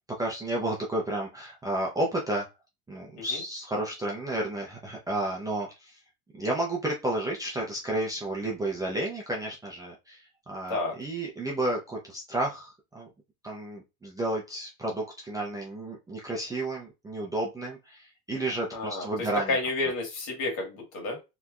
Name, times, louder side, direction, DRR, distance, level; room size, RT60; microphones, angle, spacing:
voice 1, 0.2-2.5 2.9-6.0 6.3-13.1 13.4-19.6, right 1 dB, 10° right, -3 dB, 0.5 m, -32 dB
voice 2, 18.7-19.0 19.5-21.2, left 2 dB, 55° left, 1 dB, 1.8 m, -30 dB
3.2 x 2.9 x 2.4 m, 0.25 s
supercardioid pair, 135°, 42 cm